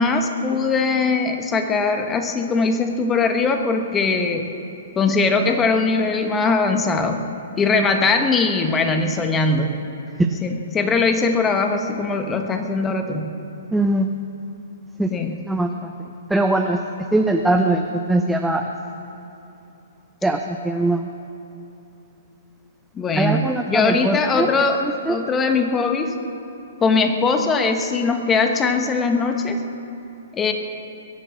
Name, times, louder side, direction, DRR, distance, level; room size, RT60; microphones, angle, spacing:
voice 1, 0.0-4.5 4.9-7.2 7.6-9.8 10.4-13.3 15.1-15.4 22.9-24.8 25.1-26.1 26.8-29.6 30.3-30.5, left 4 dB, 15° left, 6 dB, 1.3 m, -20 dB
voice 2, 13.7-14.1 15.0-15.1 15.5-15.9 16.3-16.8 17.1-18.7 20.2-21.1 23.1-24.5 24.8-25.2, right 2 dB, 5° right, 4 dB, 0.7 m, -21 dB
22.5 x 8.3 x 7.4 m, 2.8 s
figure-of-eight pair, 120°, 0 cm